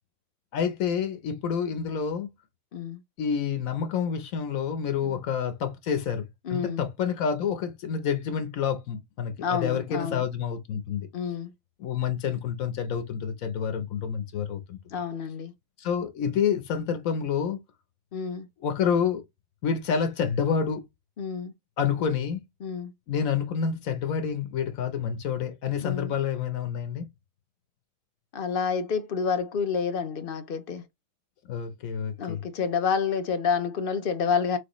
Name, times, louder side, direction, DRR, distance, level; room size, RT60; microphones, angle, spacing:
voice 1, 0.5-2.3 3.2-11.1 11.8-14.8 15.8-17.6 18.6-19.2 19.6-20.8 21.8-22.4 23.1-27.1 31.5-32.4, left 7 dB, 90° left, 1.3 m, -28 dB
voice 2, 6.5-6.8 9.4-10.2 11.1-11.5 14.9-15.5 18.1-18.5 21.2-21.5 22.6-22.9 25.8-26.1 28.3-30.8 32.2-34.6, left 6 dB, 55° left, 0.6 m, -29 dB
6.3 x 2.5 x 3.0 m
omnidirectional pair, 1.4 m